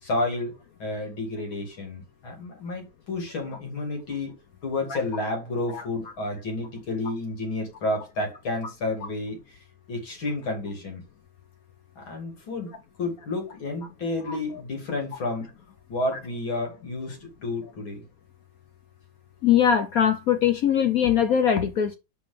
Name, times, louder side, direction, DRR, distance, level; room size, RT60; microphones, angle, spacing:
voice 1, 0.0-4.4 4.6-9.4 9.9-11.0 12.0-12.7 13.0-15.5 15.9-18.0, left 2 dB, 90° left, 3.4 m, -31 dB
voice 2, 14.3-14.6 19.4-22.0, left 8 dB, 65° left, 0.9 m, -22 dB
5.1 x 5.0 x 5.0 m
omnidirectional pair, 2.1 m